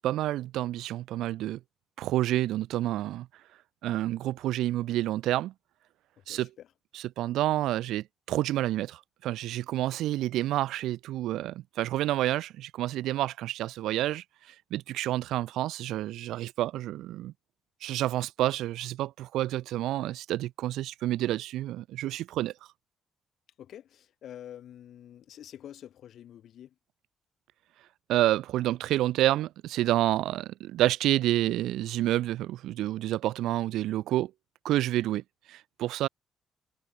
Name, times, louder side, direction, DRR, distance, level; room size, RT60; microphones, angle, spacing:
voice 1, 0.0-1.6 2.0-3.3 3.8-5.5 6.3-6.5 6.9-14.2 14.7-17.3 17.8-22.5 28.1-34.3 34.6-35.2 35.5-36.1, right 14 dB, 85° right, 0.6 m, -29 dB
voice 2, 6.3-6.7 23.6-26.7, left 10 dB, 70° left, 5.4 m, -47 dB
cardioid pair, 90°, 0 cm